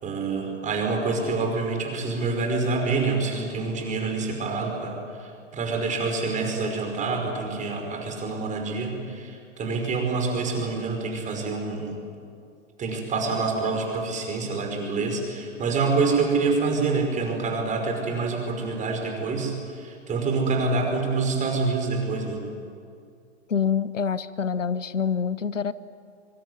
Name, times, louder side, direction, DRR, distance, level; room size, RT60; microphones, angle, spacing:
voice 1, 0.0-11.9 12.8-22.4, right 4 dB, 20° right, 3 dB, 5.5 m, -27 dB
voice 2, 23.5-25.7, left 6 dB, 75° left, 16 dB, 1.2 m, -26 dB
25.0 x 24.5 x 9.6 m, 2.4 s
figure-of-eight pair, 110°, 38 cm